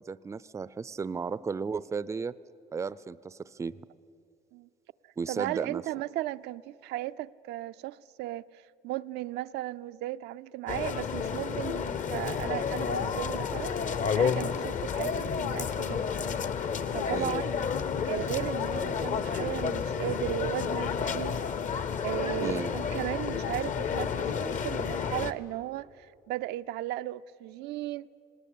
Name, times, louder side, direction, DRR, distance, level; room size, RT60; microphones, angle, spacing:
voice 1, 0.0-2.4 2.7-3.8 5.2-5.8 17.1-17.4 22.4-22.8, right 5 dB, 15° right, 0.4 m, -34 dB
voice 2, 5.3-16.1 16.9-17.5 18.1-21.4 22.0-28.1, right 15 dB, 80° right, 0.4 m, -36 dB
sound 1, 10.7-25.3, left 6 dB, 50° left, 0.8 m, -31 dB
19.0 x 18.5 x 8.4 m
cardioid pair, 110°, 17 cm